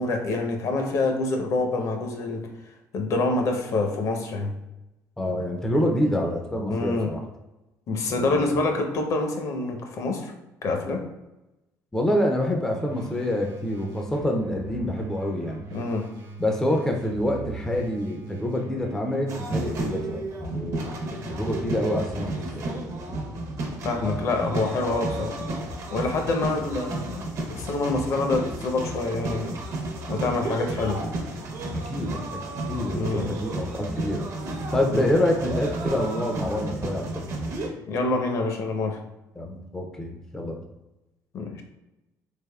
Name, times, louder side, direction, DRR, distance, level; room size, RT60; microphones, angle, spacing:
voice 1, 0.0-2.5 2.9-4.5 6.7-7.1 7.9-10.3 10.6-11.0 15.7-16.1 21.2-21.3 23.8-25.3 25.9-29.6 30.1-31.0 32.9-33.2 34.9-35.1 37.9-39.0 41.3-41.6, left 3 dB, 55° left, 3 dB, 0.6 m, -26 dB
voice 2, 5.2-7.2 8.2-8.6 11.9-15.7 16.4-20.9 21.3-22.7 31.7-32.4 32.7-34.3 34.7-37.3 39.4-40.6, left 1 dB, 10° left, 1 dB, 0.4 m, -27 dB
sound 1, 12.8-20.2, right 4 dB, 85° right, 0.9 m, -41 dB
sound 2, 19.3-37.7, right 2 dB, 50° right, 0.6 m, -32 dB
3.4 x 3.4 x 2.2 m, 0.98 s
cardioid pair, 145°, 7 cm